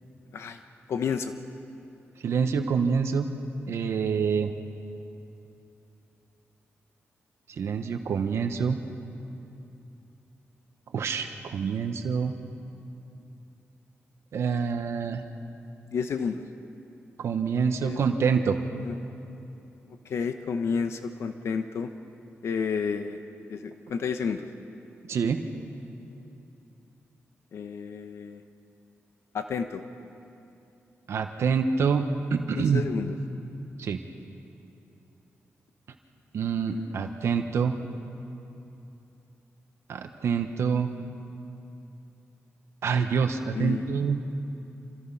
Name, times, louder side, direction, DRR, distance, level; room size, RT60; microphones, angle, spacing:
voice 1, 0.9-1.3 15.9-16.4 17.8-18.0 18.8-19.1 19.9-21.9 22.4-23.2 23.5-24.5 27.5-28.4 29.3-29.8 32.6-33.2 36.6-37.2 43.5-43.8, left 6 dB, 75° left, 7 dB, 1.1 m, -31 dB
voice 2, 2.2-3.3 3.7-4.5 7.6-8.8 10.9-12.3 14.3-15.2 17.2-18.6 25.1-25.4 31.1-32.8 33.8-34.0 36.3-37.8 39.9-40.9 42.8-44.2, right 6 dB, 75° right, 6 dB, 1.3 m, -26 dB
27.0 x 26.0 x 5.8 m, 2.8 s
cardioid pair, 105°, 5 cm